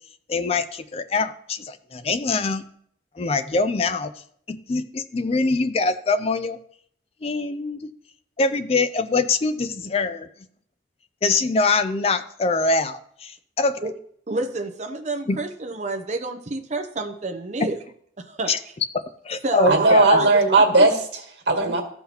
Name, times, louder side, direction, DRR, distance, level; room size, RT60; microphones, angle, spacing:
voice 1, 0.3-2.6 3.2-4.1 4.5-6.6 7.2-7.9 8.4-10.3 11.2-13.8 15.3-15.4 17.6-17.7 18.5-18.6 19.2-20.2, left 3 dB, 35° left, 11 dB, 0.4 m, -23 dB
voice 2, 14.3-17.8 18.2-18.5 19.4-20.9, right 2 dB, 40° right, 4 dB, 0.6 m, -28 dB
voice 3, 19.7-21.8, right 2 dB, 90° right, 2 dB, 1.8 m, -17 dB
14.5 x 5.6 x 2.9 m, 0.64 s
head